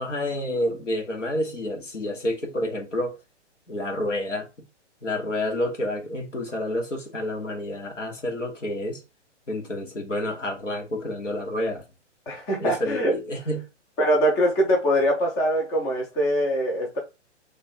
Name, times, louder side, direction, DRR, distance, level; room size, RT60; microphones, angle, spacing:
voice 1, 0.0-3.2 3.7-4.5 5.0-9.0 9.5-11.8 12.6-13.6, left 1 dB, 85° left, 1.5 m, -29 dB
voice 2, 12.3-13.1 14.0-17.0, equal, 10° left, 0.4 m, -23 dB
3.1 x 2.4 x 4.3 m
figure-of-eight pair, 125°, 36 cm